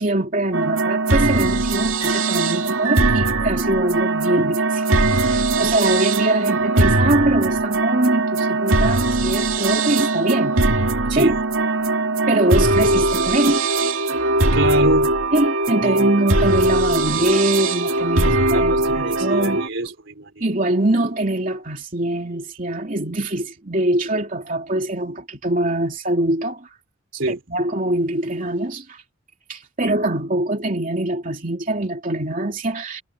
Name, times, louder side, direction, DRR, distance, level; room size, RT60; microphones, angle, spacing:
voice 1, 0.0-4.9 5.2-10.6 11.1-11.3 12.3-13.7 15.3-19.6 20.4-26.7 27.3-29.0 29.5-33.0, right 1 dB, 40° right, 2.9 m, -23 dB
sound 1, 0.5-19.7, right 2 dB, 80° right, 2.4 m, -20 dB
voice 2, 14.5-15.1 15.8-16.3 18.2-20.4 27.1-27.4, right 2 dB, 65° right, 4.1 m, -25 dB
head